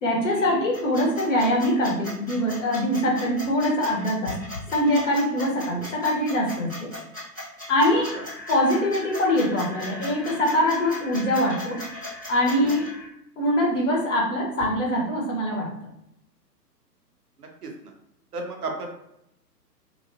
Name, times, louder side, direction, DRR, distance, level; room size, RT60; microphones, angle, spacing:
voice 1, 0.0-4.3 4.7-6.9 7.7-8.1 8.5-11.8 12.3-12.9 13.4-15.7, left 1 dB, 45° left, -2 dB, 1.0 m, -23 dB
sound 1, 0.7-12.9, left 1 dB, 15° left, 0.4 m, -38 dB
sound 2, 7.8-13.1, left 2 dB, 85° left, 0.9 m, -41 dB
voice 2, 17.4-17.7 18.3-18.9, right 3 dB, 65° right, 2 dB, 0.8 m, -34 dB
2.8 x 2.2 x 2.7 m, 0.80 s
figure-of-eight pair, 125°, 50 cm